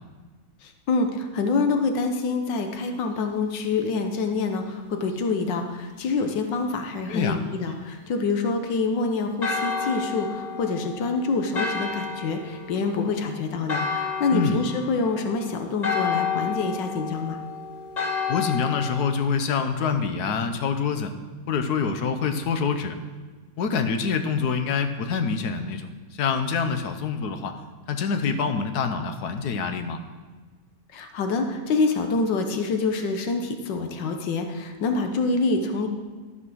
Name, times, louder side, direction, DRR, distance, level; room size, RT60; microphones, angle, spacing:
voice 1, 0.6-17.4 30.9-35.9, left 3 dB, 85° left, 5 dB, 1.6 m, -26 dB
voice 2, 7.1-7.4 14.3-14.6 18.3-21.1 21.5-23.0 23.6-27.6 27.9-30.0, left 5 dB, 65° left, 7 dB, 1.3 m, -26 dB
Church bell, 9.4-19.1, left 5 dB, 30° left, 0.8 m, -31 dB
12.5 x 6.0 x 6.2 m, 1.4 s
omnidirectional pair, 1.9 m